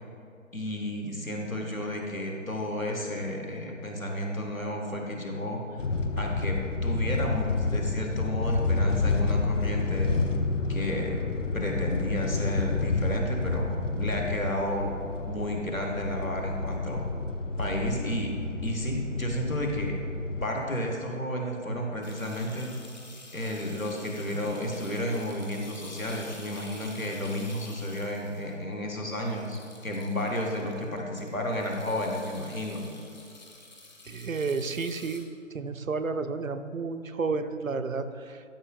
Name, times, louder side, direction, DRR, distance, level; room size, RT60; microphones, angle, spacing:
voice 1, 0.5-5.6 6.2-10.1 10.7-11.2 11.5-17.0 17.6-18.3 18.6-20.0 20.4-22.7 23.3-32.9, left 1 dB, 85° left, 0 dB, 1.7 m, -32 dB
sound 1, 5.8-20.4, left 3 dB, 70° left, 0.7 m, -29 dB
sound 2, 22.0-35.2, left 2 dB, 35° left, 0.9 m, -49 dB
voice 2, 34.1-35.3 35.5-38.4, right 4 dB, 80° right, 9 dB, 0.6 m, -31 dB
12.5 x 6.1 x 2.5 m, 2.5 s
figure-of-eight pair, 155°, 39 cm